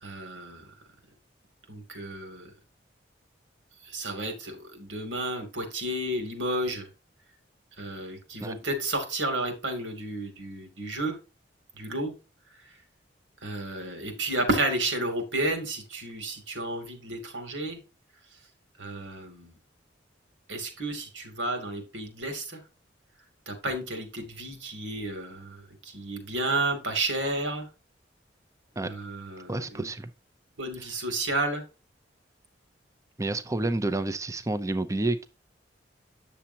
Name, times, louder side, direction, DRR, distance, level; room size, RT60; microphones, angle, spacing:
voice 1, 0.0-0.7 1.7-2.5 3.8-6.9 7.8-11.2 11.7-12.1 12.5-12.8 13.4-17.8 18.3-18.4 18.8-19.6 20.5-22.6 23.5-27.7 28.8-29.9 30.6-31.6, right 2 dB, 90° right, 2.7 m, -32 dB
voice 2, 29.5-30.1 33.2-35.3, right 2 dB, 15° right, 0.6 m, -29 dB
8.8 x 6.9 x 2.8 m
head